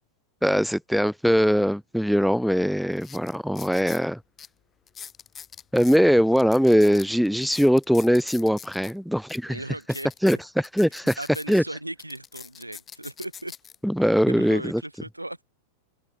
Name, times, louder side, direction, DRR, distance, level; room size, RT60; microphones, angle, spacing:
voice 1, 0.4-4.2 5.7-9.6 10.2-11.2 11.5-11.6 13.8-14.8, equal, ahead, 0.7 m, -21 dB
sound 1, 2.3-2.4 2.9-4.0 4.4-4.5 4.9-6.0 6.4-8.9 9.3-9.4 9.8-11.6 12.0-13.8 14.4-14.7, left 7 dB, 20° left, 4.3 m, -43 dB
voice 2, 9.5-10.1 11.2-13.5 14.0-15.4, right 1 dB, 85° right, 1.8 m, -37 dB
open air
figure-of-eight pair, 90°, 0 cm